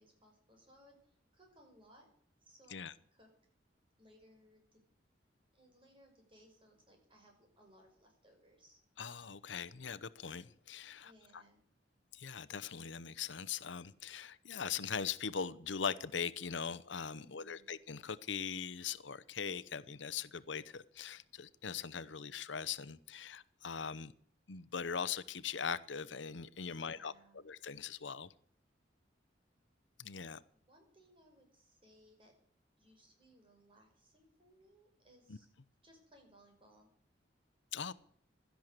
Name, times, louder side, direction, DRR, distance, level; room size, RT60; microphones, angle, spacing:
voice 1, 0.0-2.1 2.4-3.3 4.0-4.8 5.5-8.8 11.0-11.6 17.1-17.7 26.7-27.4 30.2-30.3 30.7-32.3 32.8-35.5 35.8-36.9 37.8-37.9, equal, 30° right, 2 dB, 5.7 m, -64 dB
voice 2, 9.0-11.4 12.1-24.1 24.5-28.3 30.0-30.4 35.3-35.4 37.7-37.9, left 6 dB, 75° left, 16 dB, 0.8 m, -41 dB
16.5 x 12.5 x 6.6 m, 0.62 s
head